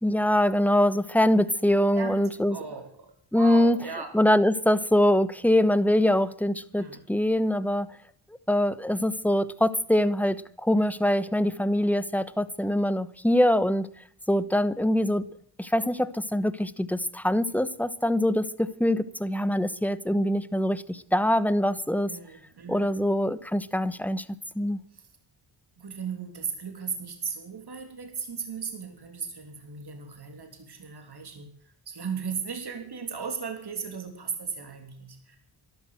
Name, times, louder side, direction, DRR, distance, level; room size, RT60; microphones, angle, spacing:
voice 1, 0.0-2.6 3.3-3.8 4.1-7.9 8.5-13.9 14.3-15.2 15.6-22.1 22.7-24.2 24.5-24.8, left 1 dB, 5° left, 15 dB, 1.0 m, -23 dB
voice 2, 1.9-4.1 6.8-7.0 22.0-22.9 24.9-25.1 25.8-35.4, right 6 dB, 50° right, 5 dB, 3.3 m, -37 dB
13.0 x 12.0 x 7.8 m, 0.62 s
cardioid pair, 55°, 48 cm